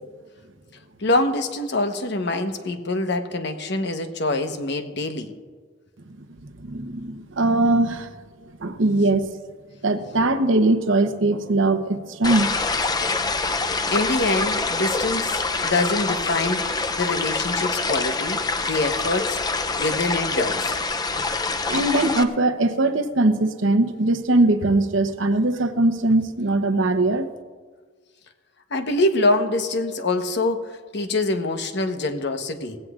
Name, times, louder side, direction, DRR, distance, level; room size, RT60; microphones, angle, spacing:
voice 1, 1.0-5.3 10.2-10.3 13.7-15.4 15.6-16.7 17.0-19.4 19.8-20.6 28.7-32.8, left 2 dB, 65° left, 6 dB, 1.1 m, -25 dB
voice 2, 6.6-8.1 8.6-9.3 9.8-12.5 21.7-27.3, right 2 dB, 80° right, 7 dB, 0.9 m, -21 dB
sound 1, 12.2-22.2, left 3 dB, 20° left, 0.5 m, -25 dB
19.0 x 16.0 x 2.5 m, 1.5 s
head